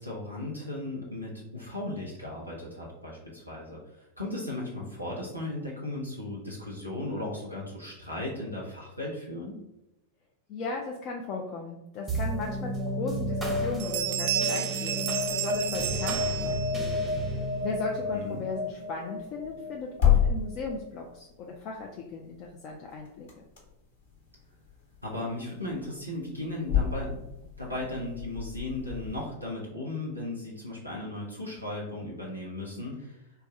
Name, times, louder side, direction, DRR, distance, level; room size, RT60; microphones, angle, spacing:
voice 1, 0.0-9.6 18.1-18.4 25.0-27.2 27.6-33.2, left 2 dB, 90° left, -5 dB, 0.9 m, -36 dB
voice 2, 10.5-16.8 17.2-23.4, left 4 dB, 40° left, 0 dB, 0.5 m, -37 dB
sound 1, 12.1-20.8, left 1 dB, 5° right, 0.8 m, -32 dB
sound 2, 12.8-12.9 13.3-13.5 13.8-16.9, right 11 dB, 45° right, 0.4 m, -32 dB
sound 3, 16.1-29.2, left 9 dB, 60° left, 1.2 m, -33 dB
3.4 x 2.3 x 4.2 m, 0.91 s
figure-of-eight pair, 90°, 0 cm